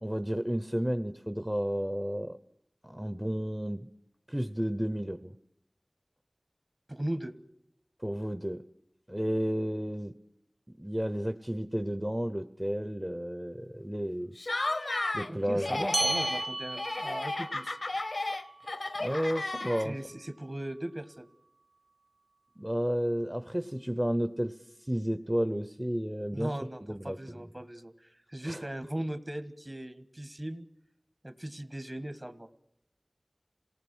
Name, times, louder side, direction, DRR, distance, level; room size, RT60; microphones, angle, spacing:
voice 1, 0.0-2.4 2.8-3.9 4.3-5.3 8.0-8.6 9.1-10.1 10.8-14.3 15.1-16.2 19.0-20.0 22.6-26.6 26.9-27.2 28.4-28.7, equal, 15° right, 10 dB, 0.8 m, -32 dB
voice 2, 6.9-7.4 15.3-17.8 19.8-21.3 26.3-27.9 28.3-30.7 31.2-32.5, right 1 dB, 35° right, 11 dB, 1.6 m, -38 dB
Laughter, 14.4-15.3 15.6-16.5 16.8-20.1, left 2 dB, 80° left, 0.7 m, -33 dB
sound 1, 15.9-20.7, right 2 dB, 75° right, 0.9 m, -37 dB
28.0 x 19.0 x 6.2 m, 0.77 s
wide cardioid pair, 45°, 0 cm